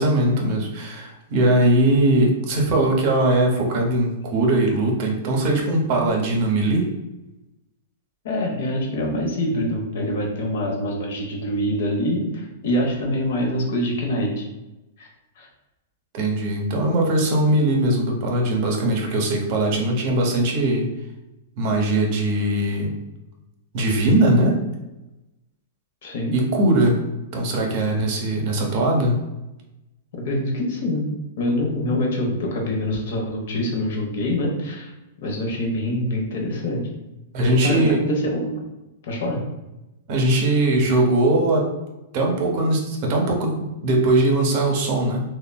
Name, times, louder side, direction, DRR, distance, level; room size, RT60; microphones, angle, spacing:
voice 1, 0.0-6.9 16.1-20.9 21.6-22.9 23.7-24.6 26.3-27.0 27.3-29.2 37.3-38.0 40.1-41.7 42.1-45.2, right 1 dB, 50° right, 1 dB, 0.7 m, -20 dB
voice 2, 8.2-14.5 15.0-15.1 15.4-15.5 26.0-26.4 30.2-31.1 31.4-34.9 35.2-36.9 37.5-38.5 39.0-39.5, left 1 dB, 65° left, 0 dB, 0.7 m, -25 dB
3.2 x 2.1 x 2.2 m, 0.98 s
hypercardioid pair, 125°, 0 cm